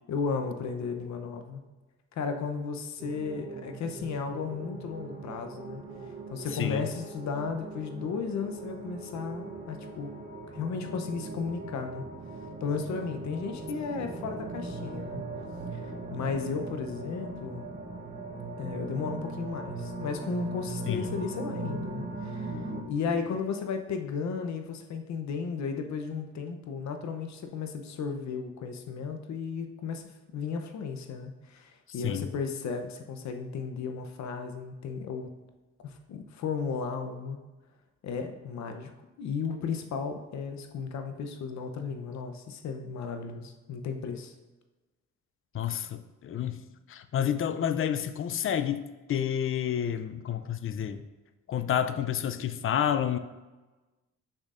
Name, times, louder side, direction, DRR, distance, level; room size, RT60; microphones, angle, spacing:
voice 1, 0.1-1.6 2.2-5.8 6.3-10.1 10.5-12.0 12.6-15.2 15.7-17.7 18.6-22.6 22.9-35.3 35.8-37.4 38.0-38.9 39.2-44.3, left 5 dB, 65° left, 6 dB, 0.8 m, -34 dB
sound 1, 3.0-22.8, right 2 dB, 30° right, 1.1 m, -39 dB
voice 2, 6.5-6.9 20.9-21.1 22.5-23.4 32.0-32.3 45.5-51.0 51.5-53.2, left 9 dB, 45° left, 11 dB, 0.5 m, -30 dB
6.3 x 6.2 x 2.5 m, 1.2 s
cardioid pair, 90°, 30 cm